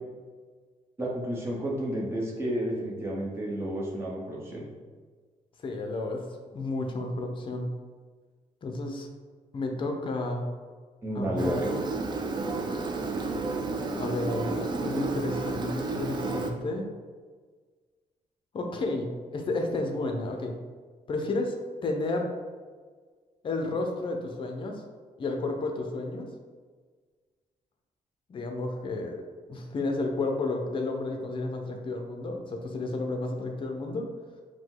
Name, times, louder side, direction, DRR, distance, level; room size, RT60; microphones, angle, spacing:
voice 1, 1.0-4.6 11.0-11.7, equal, 20° right, -4 dB, 0.9 m, -31 dB
voice 2, 5.6-6.2 6.5-7.7 8.6-9.1 9.5-10.5 11.1-11.5 14.0-16.9 18.5-20.6 21.1-21.6 21.8-22.3 23.4-24.8 25.2-26.3 28.3-29.2 29.5-34.1, left 2 dB, 40° left, 3 dB, 0.6 m, -31 dB
Engine, 11.4-16.5, right 3 dB, 35° right, 0.4 m, -31 dB
5.0 x 2.2 x 3.8 m, 1.5 s
wide cardioid pair, 145°, 13 cm